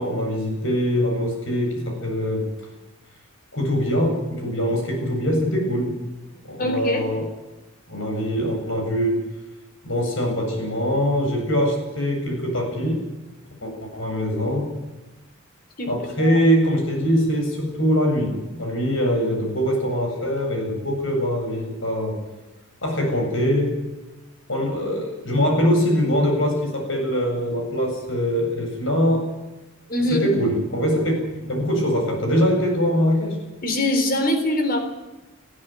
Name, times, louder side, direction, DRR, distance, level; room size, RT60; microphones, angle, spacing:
voice 1, 0.0-2.5 3.5-6.1 6.4-7.2 7.9-9.2 9.8-13.0 13.6-14.8 15.9-22.2 22.8-23.8 24.5-29.2 30.1-33.4, equal, 65° left, 2 dB, 8.0 m, -23 dB
voice 2, 6.6-7.0 15.8-15.9 16.2-16.4 29.9-30.3 33.6-34.8, left 1 dB, 40° left, 6 dB, 3.8 m, -23 dB
20.5 x 15.0 x 9.5 m, 1.1 s
head